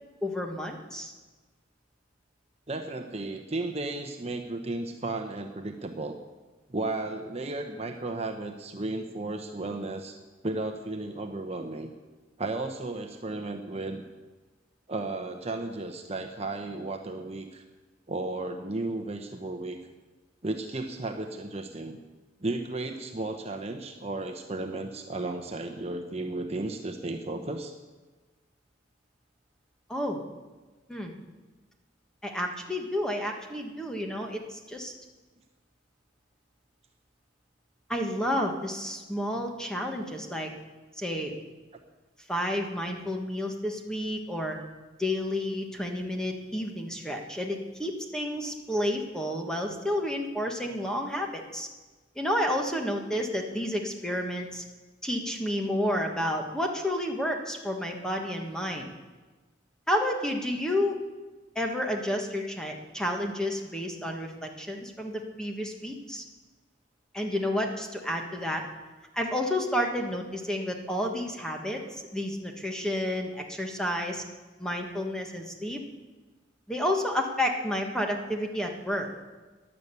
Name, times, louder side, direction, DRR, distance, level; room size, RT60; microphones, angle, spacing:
voice 1, 0.2-1.1 29.9-30.2 30.9-31.1 32.2-34.9 37.9-40.5 40.9-41.3 42.3-44.6 45.0-51.7 52.1-54.6 55.0-58.9 59.9-61.0 61.5-66.2 67.1-68.6 69.1-74.2 74.6-75.8 76.7-79.1, left 1 dB, 5° left, 2 dB, 1.5 m, -30 dB
voice 2, 2.7-6.2 6.7-10.2 10.4-11.9 12.4-14.0 14.9-17.6 18.1-19.8 20.4-22.0 22.4-27.7, right 2 dB, 35° right, 4 dB, 0.9 m, -34 dB
12.5 x 11.0 x 8.3 m, 1.3 s
head